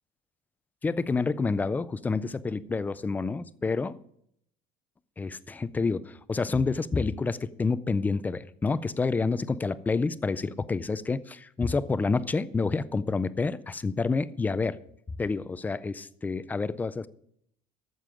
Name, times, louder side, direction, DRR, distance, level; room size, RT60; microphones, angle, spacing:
voice 1, 0.8-4.0 5.2-14.8 15.2-17.1, left 4 dB, 10° left, 16 dB, 0.3 m, -28 dB
13.0 x 7.6 x 4.9 m, 0.70 s
cardioid pair, 160°, 16 cm